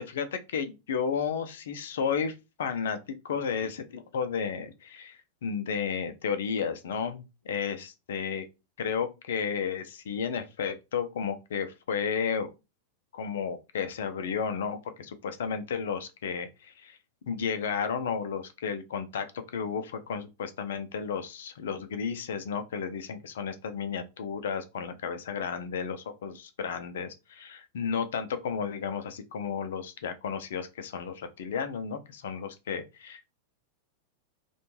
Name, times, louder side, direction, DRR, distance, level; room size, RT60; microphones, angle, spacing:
voice 1, 0.0-8.4 8.8-12.5 13.1-17.0 17.3-33.3, left 6 dB, 60° left, 0.4 m, -33 dB
2.5 x 2.2 x 3.0 m
figure-of-eight pair, 90°, 0 cm